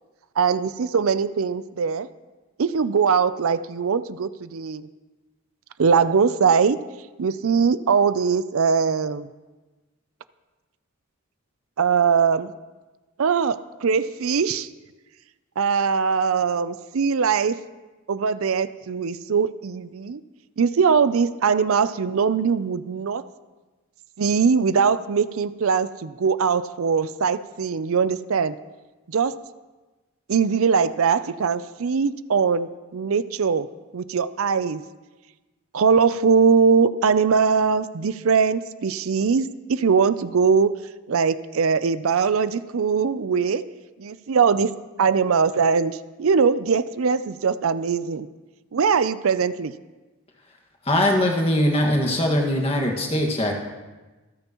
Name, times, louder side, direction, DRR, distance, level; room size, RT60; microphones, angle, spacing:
voice 1, 0.4-2.1 2.6-4.9 5.8-6.8 7.2-9.3 11.8-12.5 13.2-14.7 15.6-17.6 18.1-20.2 20.6-23.2 24.2-28.6 29.1-29.3 30.3-33.7 33.9-34.8 35.7-40.7 41.1-43.6 44.0-44.7 45.0-48.3 48.7-49.7, right 5 dB, 70° right, 14 dB, 0.5 m, -21 dB
voice 2, 50.9-53.5, left 1 dB, 25° left, 1 dB, 1.7 m, -21 dB
26.0 x 8.8 x 3.0 m, 1.2 s
head